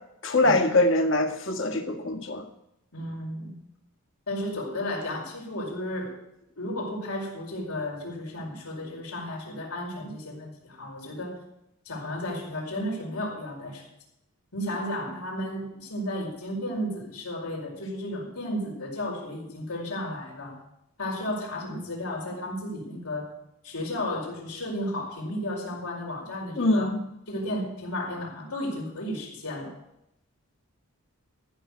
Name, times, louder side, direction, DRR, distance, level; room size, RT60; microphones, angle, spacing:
voice 1, 0.2-2.4 26.6-27.0, left 2 dB, 55° left, 4 dB, 1.8 m, -23 dB
voice 2, 2.9-3.6 4.3-6.2 6.6-11.4 11.8-13.9 14.5-20.6 21.0-23.3 23.6-26.9 27.3-29.7, left 1 dB, 85° left, -1 dB, 4.8 m, -33 dB
14.5 x 6.6 x 8.3 m, 0.80 s
head